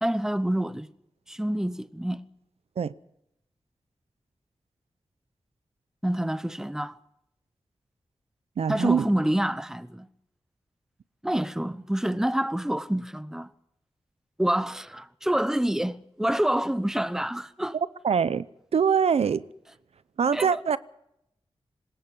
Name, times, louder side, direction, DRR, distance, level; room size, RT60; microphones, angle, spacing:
voice 1, 0.0-0.9 1.3-2.2 6.0-7.0 8.7-10.1 11.2-13.5 14.4-17.8 20.3-20.6, right 1 dB, 5° right, 0.8 m, -27 dB
voice 2, 8.6-9.1 18.0-18.5 18.7-19.4 20.2-20.8, right 6 dB, 90° right, 0.7 m, -23 dB
25.5 x 20.0 x 5.5 m
wide cardioid pair, 110°, 10 cm